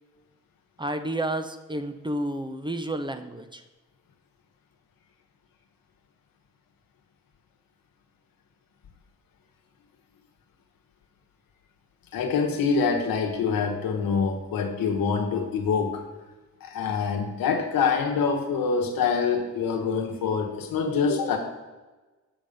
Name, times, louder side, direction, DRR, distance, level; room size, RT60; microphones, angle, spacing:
voice 1, 0.8-3.6, right 1 dB, 15° right, 9 dB, 0.7 m, -31 dB
voice 2, 12.1-16.0 16.6-21.4, left 5 dB, 90° left, 3 dB, 1.2 m, -25 dB
7.5 x 5.3 x 5.1 m, 1.2 s
cardioid pair, 60°, 34 cm